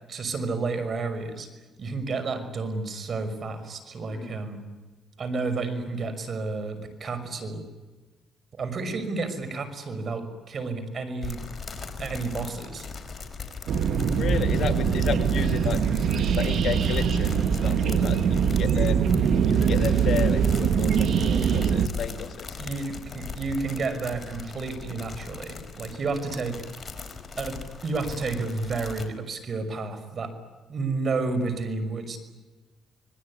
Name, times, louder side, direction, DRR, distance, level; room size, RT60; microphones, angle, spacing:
voice 1, 0.1-1.5 1.8-4.6 5.2-7.6 8.6-11.4 12.0-12.9 21.5-21.6 22.6-26.6 27.4-30.3 30.7-32.2, right 3 dB, 50° right, 9 dB, 5.8 m, -31 dB
sound 1, 11.2-29.1, left 5 dB, 30° left, 5.0 m, -39 dB
sound 2, 13.7-21.9, right 7 dB, 70° right, 1.4 m, -23 dB
voice 2, 14.2-15.8 16.3-19.0 19.4-22.5, left 7 dB, 60° left, 7 dB, 3.0 m, -32 dB
26.5 x 22.0 x 9.9 m, 1.2 s
cardioid pair, 90°, 0 cm